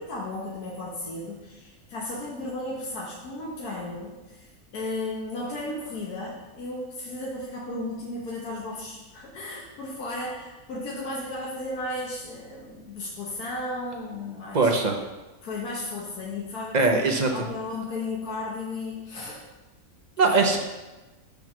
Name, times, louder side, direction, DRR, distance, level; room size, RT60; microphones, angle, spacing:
voice 1, 0.0-14.7 15.4-17.0 17.3-19.4 20.2-20.5, left 2 dB, 80° left, -4 dB, 1.7 m, -34 dB
voice 2, 14.5-15.0 16.7-17.4 20.2-20.6, right 3 dB, 40° right, 2 dB, 0.7 m, -21 dB
6.0 x 5.3 x 6.0 m, 1.1 s
omnidirectional pair, 1.6 m